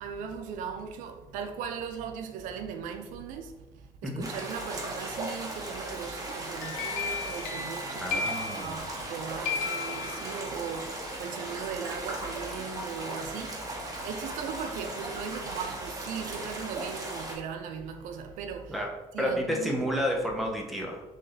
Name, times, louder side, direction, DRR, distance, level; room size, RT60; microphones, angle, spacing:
voice 1, 0.0-3.5 4.0-8.2 8.5-10.8 11.2-13.5 14.0-18.6 19.1-19.9, right 6 dB, 85° right, 0.4 m, -38 dB
sound 1, 4.2-17.3, right 2 dB, 25° right, 1.0 m, -37 dB
sound 2, 6.4-9.1 9.4-10.7, left 5 dB, 90° left, 0.7 m, -35 dB
voice 2, 8.0-8.8 18.7-18.9 19.2-21.0, equal, ahead, 0.7 m, -30 dB
3.0 x 2.7 x 3.8 m
cardioid pair, 110°, 13 cm